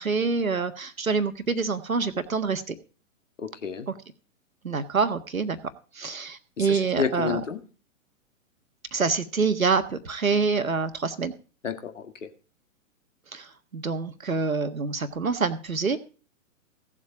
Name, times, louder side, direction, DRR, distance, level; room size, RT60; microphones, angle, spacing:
voice 1, 0.0-2.7 3.9-4.0 4.6-5.6 5.9-7.4 8.9-11.3 13.3-16.0, right 4 dB, 75° right, 9 dB, 1.5 m, -26 dB
voice 2, 3.4-3.9 6.6-7.6 11.6-12.3, left 6 dB, 60° left, 6 dB, 2.1 m, -30 dB
16.5 x 7.5 x 4.8 m, 0.38 s
figure-of-eight pair, 115°, 41 cm